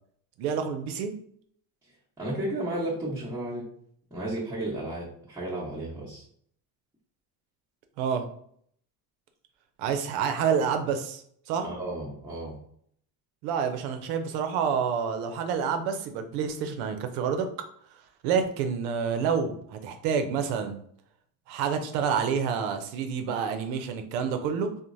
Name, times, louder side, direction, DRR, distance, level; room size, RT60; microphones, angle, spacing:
voice 1, 0.4-1.1 8.0-8.2 9.8-11.2 11.5-11.7 13.4-17.5 18.2-20.8 21.5-24.7, right 6 dB, 85° right, 7 dB, 0.6 m, -28 dB
voice 2, 2.2-3.7 4.1-6.2 11.6-12.5, right 1 dB, 5° right, -9 dB, 0.9 m, -33 dB
3.0 x 2.1 x 2.5 m, 0.63 s
supercardioid pair, 85°, 44 cm